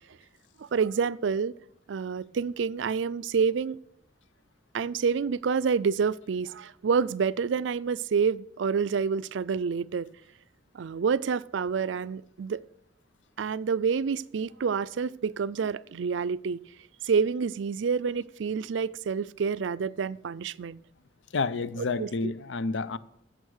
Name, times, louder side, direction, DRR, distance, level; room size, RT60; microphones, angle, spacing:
voice 1, 0.6-1.5 1.9-3.8 4.7-10.1 10.7-12.6 13.4-16.6 17.0-20.8 21.8-22.3, right 6 dB, 85° right, 0.4 m, -28 dB
voice 2, 21.3-23.0, left 3 dB, 85° left, 0.6 m, -29 dB
15.5 x 6.4 x 6.4 m
head